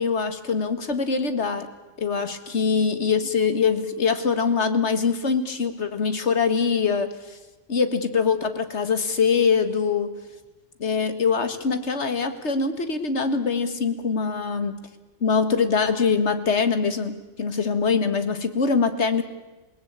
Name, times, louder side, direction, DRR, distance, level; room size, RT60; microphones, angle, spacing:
voice 1, 0.0-1.7 2.0-7.4 7.7-10.1 10.8-14.8 15.2-19.2, left 5 dB, 70° left, 10 dB, 2.0 m, -23 dB
28.0 x 18.5 x 8.8 m, 1.1 s
omnidirectional pair, 1.2 m